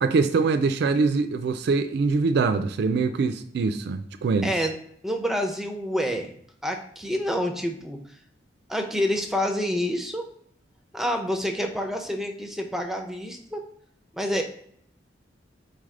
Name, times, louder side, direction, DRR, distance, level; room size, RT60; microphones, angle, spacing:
voice 1, 0.0-4.5, right 4 dB, 60° right, 0.3 m, -23 dB
voice 2, 4.4-4.8 5.0-6.3 6.6-8.0 8.7-10.3 10.9-13.6 14.1-14.4, equal, ahead, 0.5 m, -27 dB
4.3 x 3.3 x 3.6 m
head